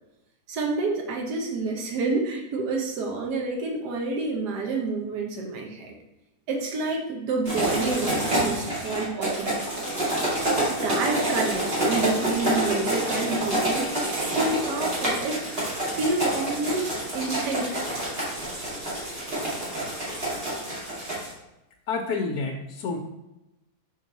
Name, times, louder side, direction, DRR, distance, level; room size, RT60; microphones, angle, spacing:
voice 1, 0.5-5.9 6.5-9.6 9.9-18.0, right 3 dB, 80° right, 0 dB, 1.6 m, -29 dB
sound 1, 7.4-21.3, right 1 dB, 35° right, 2.1 m, -27 dB
voice 2, 21.9-23.0, left 4 dB, 75° left, 2 dB, 1.1 m, -29 dB
5.6 x 4.5 x 4.1 m, 0.95 s
omnidirectional pair, 1.8 m